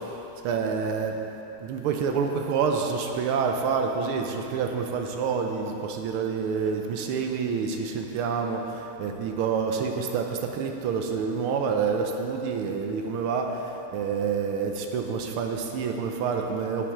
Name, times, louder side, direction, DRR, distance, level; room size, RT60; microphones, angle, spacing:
voice 1, 0.4-1.1 1.6-8.6 9.0-10.3 10.6-13.4 13.9-16.9, right 6 dB, 85° right, 3 dB, 1.6 m, -27 dB
16.0 x 6.0 x 3.7 m, 3.0 s
omnidirectional pair, 2.4 m